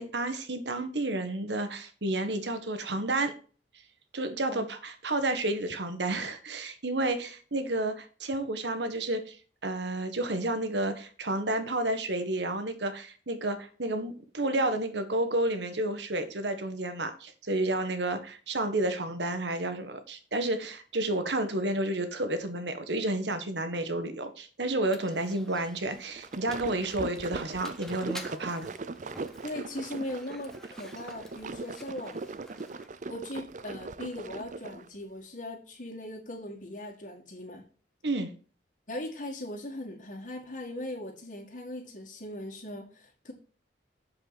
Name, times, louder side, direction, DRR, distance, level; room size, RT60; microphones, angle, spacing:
voice 1, 0.0-3.3 4.1-9.4 9.6-28.7 38.0-38.3, right 2 dB, 85° right, 1.5 m, -31 dB
Mechanisms, 24.8-32.9, equal, 5° left, 1.2 m, -48 dB
sound 1, 26.0-34.9, right 3 dB, 45° right, 0.5 m, -40 dB
voice 2, 29.4-32.2 33.1-37.6 38.9-43.3, left 1 dB, 50° left, 2.0 m, -39 dB
7.8 x 7.5 x 4.2 m
head